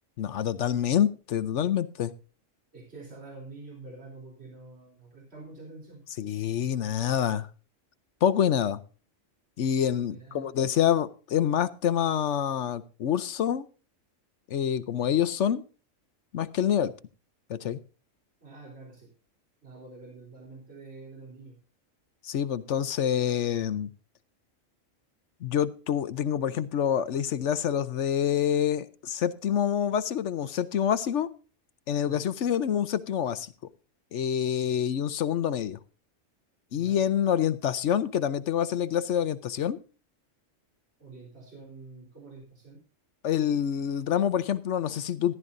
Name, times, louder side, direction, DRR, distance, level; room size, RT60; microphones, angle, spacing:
voice 1, 0.2-2.1 6.2-7.5 8.2-8.8 9.6-13.7 14.5-15.6 16.3-16.9 17.5-17.8 22.2-23.9 25.4-31.3 31.9-33.5 34.1-35.8 36.7-39.8 43.2-45.3, left 9 dB, 70° left, 15 dB, 1.0 m, -27 dB
voice 2, 2.7-6.0 9.9-10.5 18.4-19.1 19.6-21.6 32.1-32.3 36.7-37.0 41.0-42.8, right 3 dB, 55° right, -1 dB, 4.0 m, -47 dB
14.5 x 12.0 x 2.6 m, 0.35 s
omnidirectional pair, 1.3 m